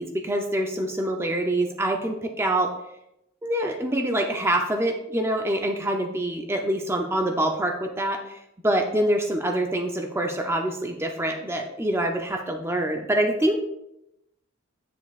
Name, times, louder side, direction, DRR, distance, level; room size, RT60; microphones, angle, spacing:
voice 1, 0.0-2.7 3.4-13.7, right 1 dB, 10° right, 2 dB, 0.6 m, -25 dB
10.0 x 7.2 x 2.4 m, 0.83 s
head